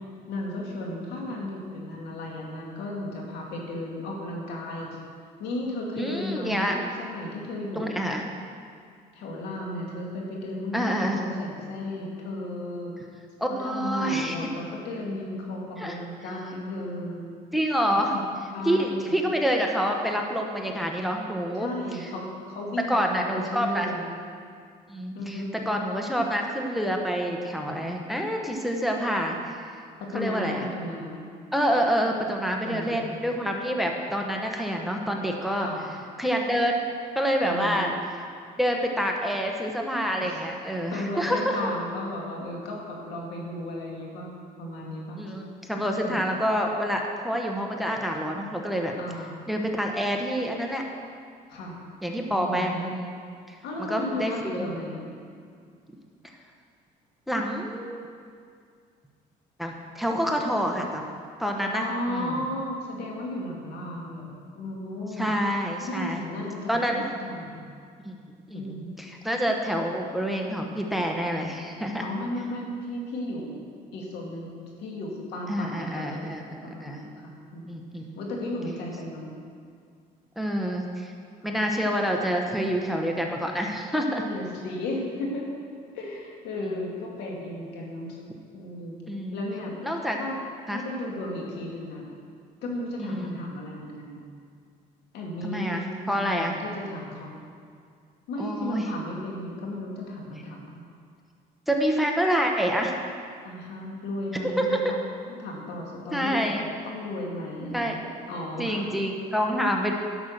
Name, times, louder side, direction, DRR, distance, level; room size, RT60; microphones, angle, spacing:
voice 1, 0.3-5.0 5.4-8.1 9.1-12.9 13.6-17.3 18.1-18.2 18.5-19.1 21.6-24.1 25.1-25.5 30.0-31.3 32.6-33.2 35.6-35.8 37.4-37.9 40.2-40.5 40.9-44.3 44.6-45.2 46.0-46.4 49.0-49.4 51.5-51.8 52.3-52.9 53.6-55.1 61.7-64.3 64.5-65.3 65.9-67.7 68.5-69.0 72.0-73.5 73.9-74.5 74.8-77.8 78.2-79.4 81.5-81.6 84.1-85.5 85.9-88.2 88.5-89.0 89.3-89.8 90.2-90.4 90.7-92.0 92.6-94.3 95.1-97.4 98.3-100.9 103.4-108.0 108.3-109.0, left 1 dB, 80° left, -1 dB, 2.3 m, -34 dB
voice 2, 6.0-6.8 7.7-8.2 10.7-11.2 13.4-14.4 15.8-16.0 17.5-18.1 18.6-21.7 22.9-23.9 24.9-29.6 30.1-30.7 31.5-35.7 36.2-36.8 37.1-37.9 38.6-41.6 45.2-48.9 49.5-50.8 52.0-53.2 53.5-54.7 57.3-58.1 59.6-61.0 61.4-62.4 63.8-64.2 65.2-66.2 66.7-67.0 68.0-68.2 68.5-72.0 75.5-77.0 77.6-78.2 80.4-81.1 81.4-84.2 89.1-89.4 89.8-90.2 90.7-90.8 93.0-93.4 95.4-96.5 98.4-98.9 101.7-103.0 104.6-104.9 106.1-106.6 107.7-108.0 108.6-109.9, equal, ahead, 1 dB, 1.0 m, -27 dB
11.0 x 6.2 x 6.6 m, 2.2 s
cardioid pair, 110°, 17 cm